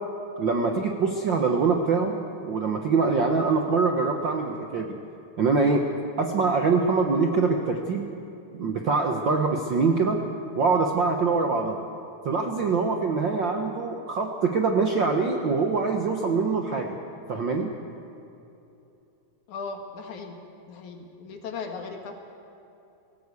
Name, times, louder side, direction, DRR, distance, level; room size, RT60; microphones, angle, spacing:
voice 1, 0.4-4.9 5.4-5.8 6.2-8.1 8.5-10.2 10.6-11.8 12.2-16.9 17.3-17.7, right 4 dB, 60° right, 3 dB, 1.2 m, -24 dB
voice 2, 19.5-20.4 20.7-22.2, left 4 dB, 75° left, 4 dB, 3.2 m, -37 dB
18.0 x 17.5 x 8.4 m, 2.8 s
omnidirectional pair, 3.5 m